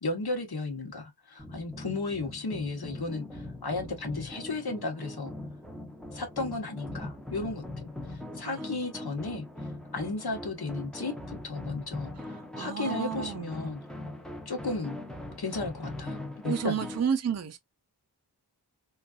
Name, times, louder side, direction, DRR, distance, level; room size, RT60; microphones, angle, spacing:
voice 1, 0.0-5.3 6.1-9.5 9.9-13.8 14.2-15.0 15.4-16.9, left 3 dB, 65° left, 1.1 m, -34 dB
sound 1, 1.4-17.1, left 1 dB, ahead, 0.6 m, -41 dB
voice 2, 12.2-13.5 16.4-17.6, right 7 dB, 40° right, 0.5 m, -31 dB
3.8 x 2.4 x 2.3 m
wide cardioid pair, 55°, 41 cm